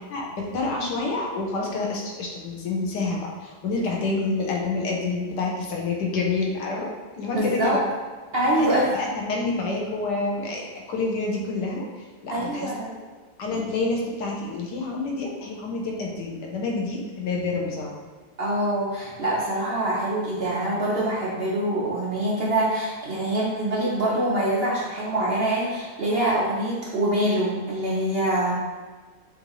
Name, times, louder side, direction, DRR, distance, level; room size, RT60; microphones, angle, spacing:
voice 1, 0.1-6.9 7.1-7.8 8.6-13.0 13.4-17.9, left 3 dB, 85° left, -1 dB, 1.4 m, -28 dB
voice 2, 7.3-7.8 8.3-8.9 12.3-12.9 18.4-28.5, right 1 dB, 50° right, -6 dB, 0.7 m, -24 dB
6.3 x 2.7 x 3.1 m, 1.4 s
omnidirectional pair, 1.8 m